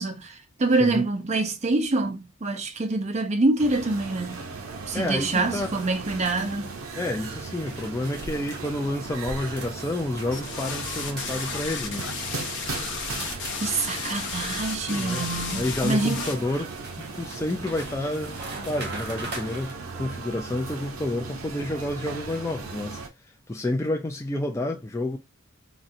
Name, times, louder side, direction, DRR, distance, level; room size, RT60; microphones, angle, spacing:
voice 1, 0.0-4.4 4.9-6.7 13.6-16.2, right 2 dB, 35° right, 0.6 m, -26 dB
sound 1, 3.6-23.1, right 4 dB, 75° right, 0.6 m, -37 dB
sound 2, 4.3-19.7, right 3 dB, 55° right, 1.0 m, -44 dB
voice 2, 4.9-5.7 7.0-12.1 15.0-15.2 15.5-23.0 23.5-25.2, left 1 dB, 15° left, 0.3 m, -29 dB
sound 3, 10.3-16.3, left 5 dB, 60° left, 0.7 m, -34 dB
4.1 x 2.1 x 2.5 m
head